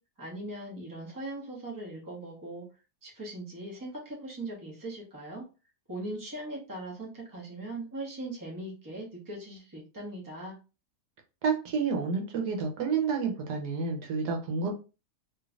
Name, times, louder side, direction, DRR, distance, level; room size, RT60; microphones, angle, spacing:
voice 1, 0.2-2.6 3.0-5.4 5.9-10.6, right 1 dB, 15° right, -3 dB, 1.0 m, -40 dB
voice 2, 11.4-14.7, right 5 dB, 80° right, 2 dB, 1.4 m, -29 dB
3.2 x 3.2 x 2.4 m, 0.32 s
omnidirectional pair, 1.7 m